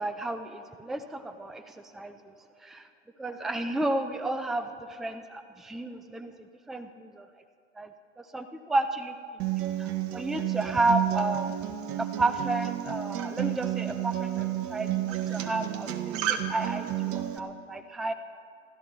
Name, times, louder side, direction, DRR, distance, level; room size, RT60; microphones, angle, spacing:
voice 1, 0.0-2.3 2.6-2.9 3.2-6.3 6.7-7.3 7.8-7.9 8.2-9.5 9.8-11.5 12.0-18.1, right 2 dB, ahead, 10 dB, 0.5 m, -32 dB
Acoustic guitar, 9.4-17.4, right 12 dB, 40° right, 1.3 m, -31 dB
27.0 x 13.0 x 4.0 m, 2.3 s
hypercardioid pair, 100°, 37 cm